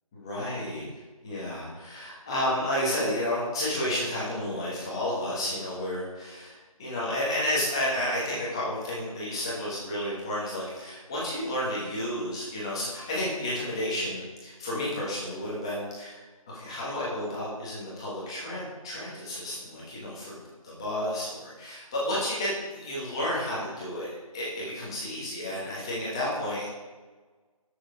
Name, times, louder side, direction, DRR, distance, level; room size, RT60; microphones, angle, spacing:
voice 1, 0.1-0.9 1.2-16.2 16.5-20.4 20.6-26.7, left 1 dB, 10° left, -7 dB, 1.4 m, -31 dB
12.5 x 6.6 x 4.9 m, 1.3 s
figure-of-eight pair, 175°, 19 cm